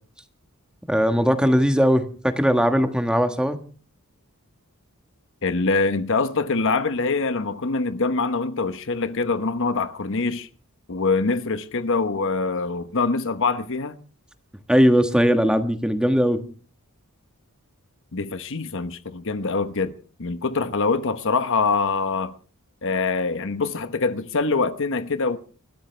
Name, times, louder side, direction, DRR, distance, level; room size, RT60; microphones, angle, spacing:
voice 1, 0.9-3.6 14.7-16.4, equal, 5° right, 1.4 m, -19 dB
voice 2, 5.4-10.5 10.9-14.0 18.1-19.9 20.2-22.3 22.8-25.4, left 4 dB, 60° left, 1.1 m, -24 dB
29.5 x 13.0 x 3.3 m
head